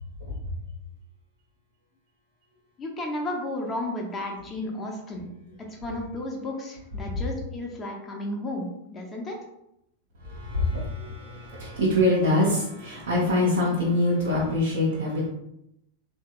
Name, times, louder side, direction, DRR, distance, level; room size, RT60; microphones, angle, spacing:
voice 1, 2.8-5.3 5.8-9.4, left 1 dB, 20° left, 0 dB, 0.7 m, -33 dB
voice 2, 10.2-15.3, left 1 dB, 65° right, -8 dB, 0.9 m, -24 dB
3.6 x 2.8 x 2.4 m, 0.80 s
figure-of-eight pair, 90°, 0 cm